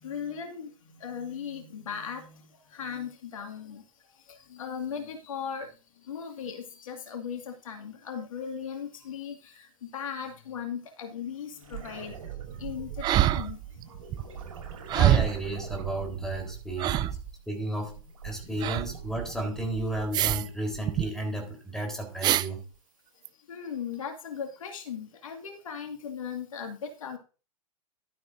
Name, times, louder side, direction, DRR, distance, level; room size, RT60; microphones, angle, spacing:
voice 1, 0.0-0.7 1.0-2.3 2.7-3.8 4.5-5.7 6.1-12.1 12.6-13.6 23.5-27.2, left 7 dB, 65° left, 4 dB, 2.1 m, -37 dB
sound 1, 11.6-17.4 17.8-20.3 22.7-22.8, right 8 dB, 65° right, 6.1 m, -42 dB
sound 2, 13.0-13.8 14.1-14.2 14.9-15.5 16.3-16.4 16.8-17.3 18.6-18.9 20.1-20.5 20.7-21.0 22.2-22.5 23.2-23.3, right 13 dB, 25° right, 0.4 m, -25 dB
voice 2, 14.9-17.2 17.5-22.6, right 1 dB, 5° left, 4 dB, 3.9 m, -33 dB
12.0 x 10.0 x 2.7 m, 0.34 s
figure-of-eight pair, 105°, 18 cm